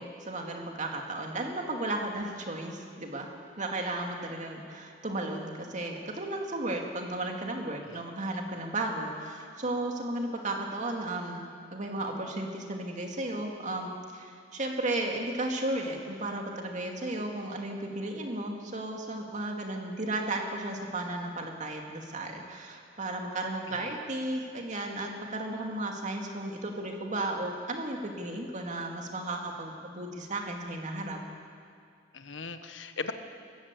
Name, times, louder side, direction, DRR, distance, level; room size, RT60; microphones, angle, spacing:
voice 1, 0.0-3.3 3.6-11.4 11.7-31.2, right 2 dB, 40° right, 1 dB, 2.4 m, -34 dB
voice 2, 23.7-24.0 32.1-33.1, left 4 dB, 75° left, 8 dB, 1.2 m, -39 dB
21.0 x 15.5 x 8.3 m, 2.2 s
head